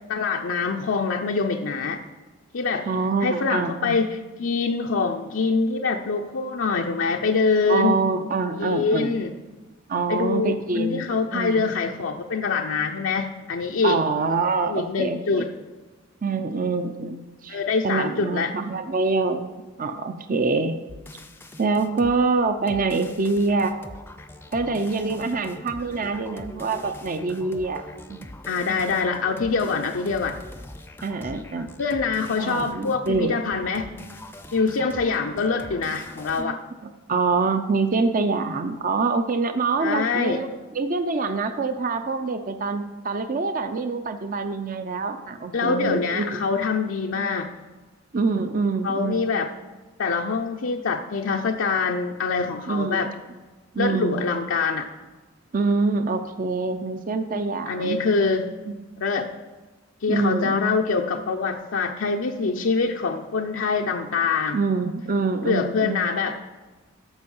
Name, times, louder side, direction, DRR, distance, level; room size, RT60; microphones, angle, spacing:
voice 1, 0.1-2.0 2.5-2.9 3.2-8.0 8.5-9.3 10.1-14.0 14.7-15.5 17.5-18.5 28.5-30.4 31.8-33.9 34.5-36.6 39.8-40.4 45.5-47.5 48.8-49.5 50.0-53.1 53.8-54.9 57.7-58.5 59.0-59.3 60.0-64.6 65.5-66.4, left 4 dB, 75° left, 2 dB, 0.6 m, -24 dB
voice 2, 2.9-4.0 7.7-9.1 9.9-11.0 11.3-11.7 13.8-15.5 16.2-20.8 21.6-23.8 24.5-27.8 28.1-28.3 28.7-28.9 31.0-31.7 32.4-33.6 36.4-36.6 37.1-46.4 48.1-49.2 52.7-53.2 53.7-54.2 55.5-58.0 58.7-58.8 60.1-60.8 64.5-66.0, right 4 dB, 45° right, 8 dB, 0.5 m, -25 dB
sound 1, 20.9-22.2 22.7-36.5, left 1 dB, 10° left, 0.5 m, -42 dB
13.5 x 5.3 x 5.4 m, 1.3 s
head